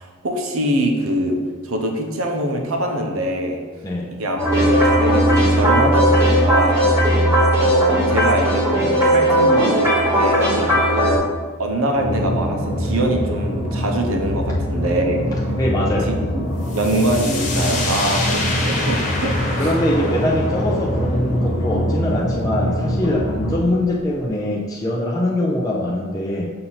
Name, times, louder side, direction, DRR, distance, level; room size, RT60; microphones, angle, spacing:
voice 1, 0.0-3.6 4.1-6.9 7.6-15.3 16.1-16.5 16.7-19.7, right 1 dB, 75° right, 2 dB, 0.8 m, -23 dB
sound 1, 4.4-11.2, right 1 dB, 15° right, 1.2 m, -17 dB
sound 2, 11.9-23.6, equal, 90° left, 1.1 m, -24 dB
voice 2, 15.6-16.1 19.6-26.5, left 1 dB, 15° left, -4 dB, 0.5 m, -22 dB
sound 3, 16.6-24.2, left 2 dB, 35° left, 1.2 m, -28 dB
6.5 x 2.8 x 5.7 m, 1.5 s
head